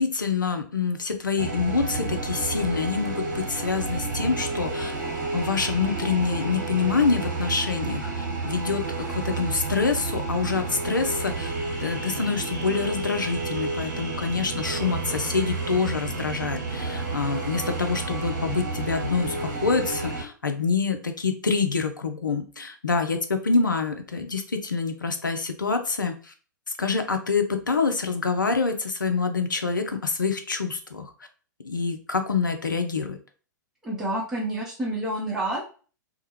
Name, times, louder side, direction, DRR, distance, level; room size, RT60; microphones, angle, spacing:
voice 1, 0.0-4.9 5.3-11.5 11.8-19.4 19.6-26.3 26.8-31.1 31.6-33.2, left 4 dB, 80° left, 6 dB, 0.5 m, -26 dB
sound 1, 1.4-20.2, right 3 dB, 50° right, 0.9 m, -31 dB
voice 2, 33.8-35.6, right 1 dB, 5° right, -5 dB, 0.6 m, -28 dB
2.3 x 2.1 x 3.1 m, 0.39 s
figure-of-eight pair, 105°, 10 cm